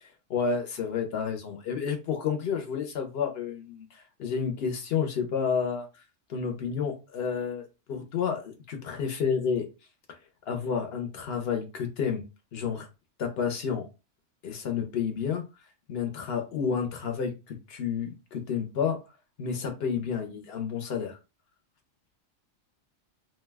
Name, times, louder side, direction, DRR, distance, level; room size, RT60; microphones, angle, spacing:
voice 1, 0.3-5.9 6.3-9.7 10.5-12.2 12.5-12.9 13.2-13.9 14.4-15.4 15.9-19.0 19.4-21.2, left 6 dB, 60° left, 0.9 m, -30 dB
2.7 x 2.2 x 3.3 m
omnidirectional pair, 1.3 m